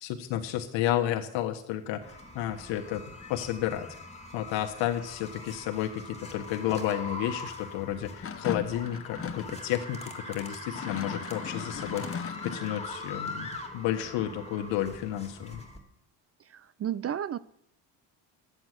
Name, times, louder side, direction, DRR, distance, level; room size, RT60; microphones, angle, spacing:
voice 1, 0.0-2.0 2.3-3.0 3.3-3.9 4.3-15.6, left 12 dB, 80° left, 4 dB, 1.4 m, -31 dB
sound 1, 2.0-15.8, left 2 dB, 15° left, 2.4 m, -42 dB
sound 2, 8.2-9.5 10.6-12.9, left 6 dB, 30° left, 0.9 m, -37 dB
voice 2, 16.5-17.4, right 9 dB, 35° right, 18 dB, 0.4 m, -33 dB
11.5 x 8.2 x 7.6 m, 0.72 s
cardioid pair, 95°, 45 cm